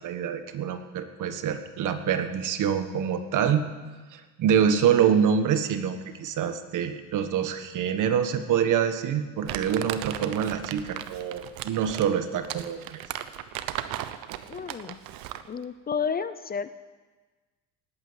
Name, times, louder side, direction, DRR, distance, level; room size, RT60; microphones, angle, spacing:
voice 1, 0.0-3.7 4.1-13.0, right 8 dB, 60° right, 9 dB, 1.5 m, -26 dB
Crumpling crinkling, 9.5-15.5, right 12 dB, 80° right, 1.0 m, -36 dB
voice 2, 14.5-15.0 15.5-16.8, left 6 dB, 25° left, 13 dB, 0.6 m, -31 dB
19.0 x 8.9 x 8.0 m, 1.3 s
cardioid pair, 115°, 35 cm